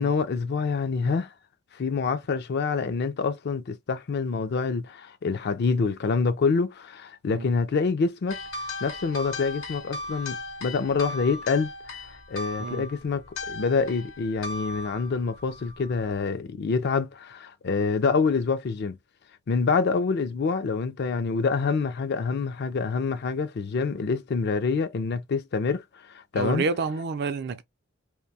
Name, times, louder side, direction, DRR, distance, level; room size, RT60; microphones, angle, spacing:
voice 1, 0.0-1.3 1.7-8.4 8.8-12.0 12.3-19.0 19.5-26.6, left 4 dB, 50° left, 0.4 m, -26 dB
sound 1, 8.3-16.2, left 2 dB, 70° left, 0.8 m, -37 dB
voice 2, 26.3-27.6, right 4 dB, 50° right, 0.4 m, -29 dB
2.6 x 2.2 x 2.6 m
head